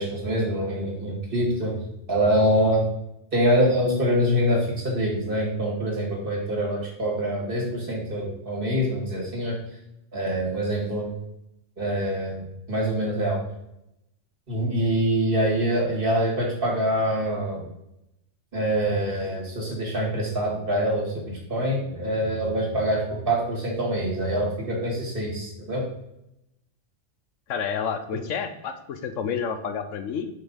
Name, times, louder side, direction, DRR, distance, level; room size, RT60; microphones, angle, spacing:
voice 1, 0.0-1.8 2.1-2.9 3.3-9.6 10.1-11.1 11.8-13.4 14.5-17.7 18.5-25.8, equal, 45° right, -3 dB, 2.2 m, -25 dB
voice 2, 27.5-30.3, left 6 dB, 75° left, 8 dB, 1.0 m, -29 dB
5.5 x 5.4 x 4.1 m, 0.84 s
omnidirectional pair, 1.3 m